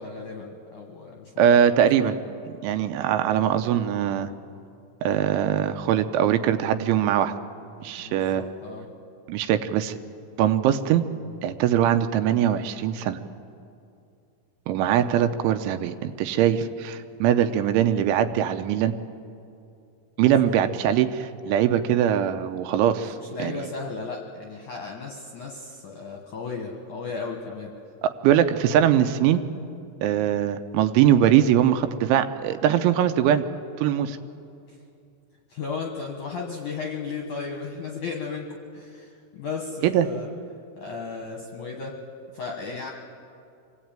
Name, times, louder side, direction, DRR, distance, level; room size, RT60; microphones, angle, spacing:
voice 1, 0.0-1.6 2.0-2.1 3.3-3.5 8.0-8.9 20.2-21.0 23.3-27.7 35.5-40.3 40.8-42.0 42.3-42.9, left 4 dB, 65° left, 1 dB, 2.0 m, -35 dB
voice 2, 1.4-2.2 2.6-4.3 5.0-7.3 7.8-8.4 9.3-10.0 10.4-11.0 11.4-13.2 14.7-18.9 20.2-23.7 28.0-29.4 30.0-33.4 33.8-34.2 39.8-40.1, right 10 dB, 80° right, 9 dB, 3.1 m, -22 dB
25.5 x 17.0 x 8.9 m, 2.5 s
omnidirectional pair, 5.7 m